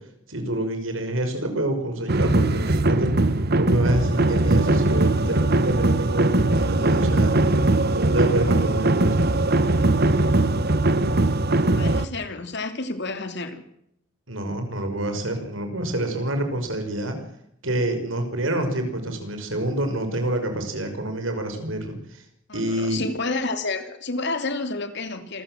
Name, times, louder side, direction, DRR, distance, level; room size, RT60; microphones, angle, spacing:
voice 1, 0.3-3.1 3.5-7.3 7.9-9.3 14.3-17.2 17.6-22.2 22.5-23.0, right 1 dB, 75° right, 6 dB, 5.8 m, -27 dB
sound 1, 2.1-12.1, right 2 dB, 50° right, 1.2 m, -20 dB
voice 2, 11.6-13.6 22.5-25.4, left 3 dB, 60° left, 9 dB, 2.9 m, -30 dB
27.0 x 14.5 x 7.7 m, 0.76 s
head